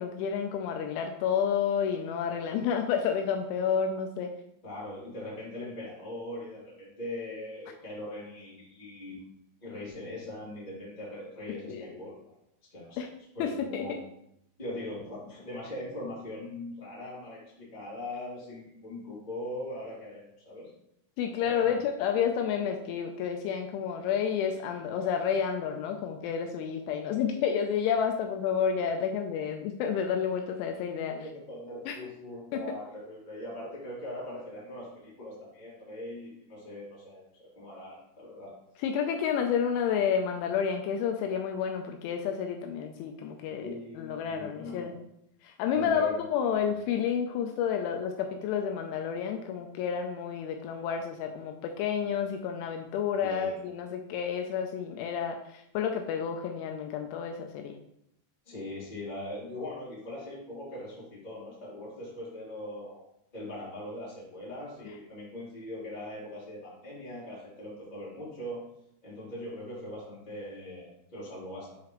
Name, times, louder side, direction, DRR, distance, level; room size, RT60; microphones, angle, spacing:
voice 1, 0.0-4.3 11.7-11.9 13.0-13.1 13.4-13.9 21.2-31.2 31.9-32.0 32.5-32.8 38.8-43.7 44.0-45.0 45.4-57.8, left 7 dB, 85° left, 4 dB, 2.7 m, -30 dB
voice 2, 4.6-9.2 9.6-12.3 12.7-13.0 13.3-13.9 14.6-20.7 21.4-21.7 31.1-38.5 43.6-44.9 45.7-46.2 53.2-53.5 58.4-63.0 63.3-68.6 69.0-71.8, left 1 dB, 30° left, -9 dB, 0.8 m, -41 dB
7.5 x 4.8 x 3.0 m, 0.77 s
omnidirectional pair, 5.9 m